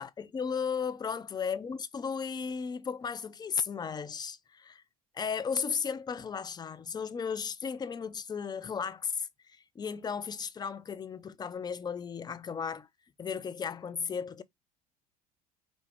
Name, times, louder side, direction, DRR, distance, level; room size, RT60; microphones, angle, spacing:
voice 1, 0.0-4.8 5.1-12.9 13.2-14.4, left 6 dB, 20° left, 0.5 m, -35 dB
4.6 x 2.6 x 3.4 m
hypercardioid pair, 70°, 19 cm